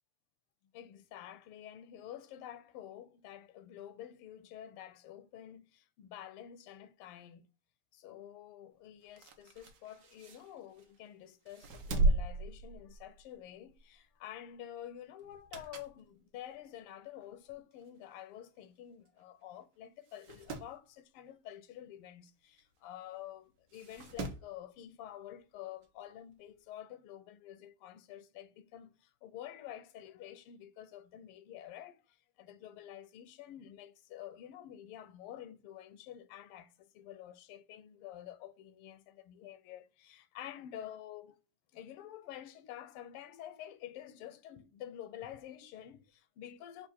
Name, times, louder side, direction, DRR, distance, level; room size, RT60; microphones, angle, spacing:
voice 1, 0.7-7.5 7.9-41.4 41.7-46.9, left 11 dB, 90° left, 1.6 m, -49 dB
sound 1, 9.0-11.0 11.5-13.3 13.7-13.9 15.2-16.0 16.5-16.6 17.5-17.6 17.8-17.9 18.1-18.2 19.1-19.2 19.6-19.7 20.0-20.7 22.6-22.7 23.7-24.5 25.8-25.9, right 2 dB, 65° right, 1.3 m, -36 dB
5.0 x 2.5 x 4.2 m
omnidirectional pair, 2.4 m